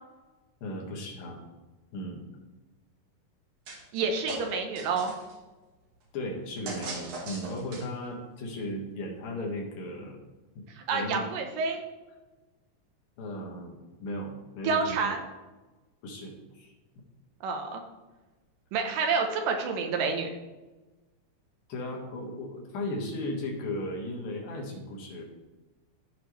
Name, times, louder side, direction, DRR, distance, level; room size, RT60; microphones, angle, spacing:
voice 1, 0.6-1.4 1.9-2.2 6.1-10.2 10.9-11.3 13.2-15.1 16.0-16.7 21.7-25.2, left 1 dB, 80° left, -1 dB, 3.3 m, -36 dB
sound 1, 3.7-4.0 4.3-5.3 6.7-8.1, right 2 dB, 60° right, 2.7 m, -39 dB
voice 2, 3.9-5.1 10.9-11.8 14.6-15.2 17.4-17.8 18.7-20.3, right 4 dB, 80° right, 3 dB, 2.5 m, -28 dB
15.0 x 5.0 x 3.2 m, 1.2 s
omnidirectional pair, 4.0 m